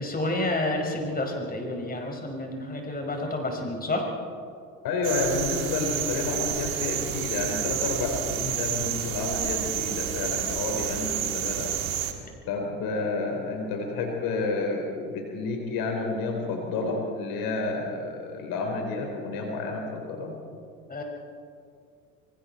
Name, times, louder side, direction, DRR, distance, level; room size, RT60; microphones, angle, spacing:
voice 1, 0.0-4.0 20.9-21.0, left 2 dB, 20° left, 1 dB, 5.3 m, -29 dB
voice 2, 4.8-12.1 12.5-20.3, left 3 dB, 55° left, 1 dB, 4.4 m, -30 dB
sound 1, 5.0-12.1, right 10 dB, 80° right, 2.1 m, -30 dB
25.5 x 24.5 x 4.5 m, 2.3 s
hypercardioid pair, 70°, 41 cm